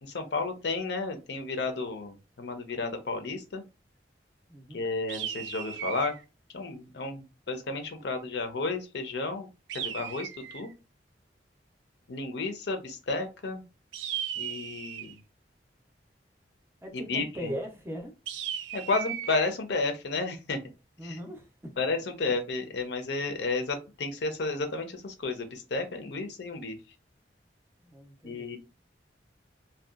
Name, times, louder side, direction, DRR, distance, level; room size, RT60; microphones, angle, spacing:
voice 1, 0.0-3.6 4.7-6.1 6.5-10.7 12.1-13.6 14.4-15.2 16.9-17.5 18.7-20.6 21.0-21.2 21.8-26.8 28.2-28.6, left 3 dB, 70° left, 6 dB, 0.6 m, -32 dB
voice 2, 4.5-4.8 16.8-18.1 21.0-21.5 26.0-26.2 27.8-28.5, equal, 15° right, 3 dB, 0.5 m, -39 dB
sound 1, 5.1-6.2 9.7-10.7 13.9-15.2 18.3-19.5, right 9 dB, 85° right, 0.3 m, -36 dB
2.7 x 2.2 x 2.4 m, 0.28 s
head